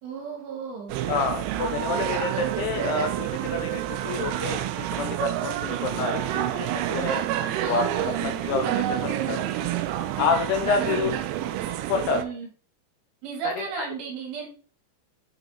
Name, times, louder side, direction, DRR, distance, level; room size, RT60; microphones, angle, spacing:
voice 1, 0.0-1.0 7.6-8.4 10.8-10.9 12.1-12.5 13.2-14.5, right 6 dB, 65° right, 0 dB, 2.8 m, -34 dB
sound 1, 0.9-12.2, right 12 dB, 90° right, 2.3 m, -28 dB
voice 2, 1.1-7.2 7.6-9.5 10.2-11.1 11.9-12.2 13.6-13.7, left 5 dB, 80° left, 5 dB, 2.5 m, -28 dB
6.9 x 4.2 x 3.9 m, 0.42 s
omnidirectional pair, 5.2 m